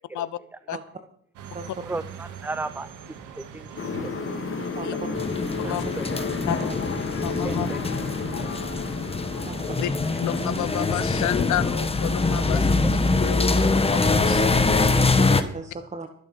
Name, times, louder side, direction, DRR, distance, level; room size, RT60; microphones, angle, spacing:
sound 1, 1.4-14.8, right 7 dB, 85° right, 1.8 m, -43 dB
voice 1, 1.9-2.9 3.4-3.7 4.1-4.4 5.6-6.1 7.4-7.8 10.1-10.2 10.7-10.8 12.5-12.6 13.6-13.7, right 3 dB, 5° right, 13 dB, 0.5 m, -35 dB
sound 2, 3.8-11.3, left 4 dB, 45° left, 2.0 m, -32 dB
voice 2, 4.7-5.1 5.6-5.7 6.6-6.7 9.4-9.9 14.9-16.1, right 4 dB, 25° right, 6 dB, 1.2 m, -36 dB
sound 3, 5.1-15.4, left 3 dB, 20° left, 1.3 m, -23 dB
voice 3, 7.2-7.7 9.8-9.9 10.2-14.5, left 13 dB, 75° left, 17 dB, 0.9 m, -31 dB
21.5 x 7.7 x 5.7 m, 0.63 s
cardioid pair, 90°, 30 cm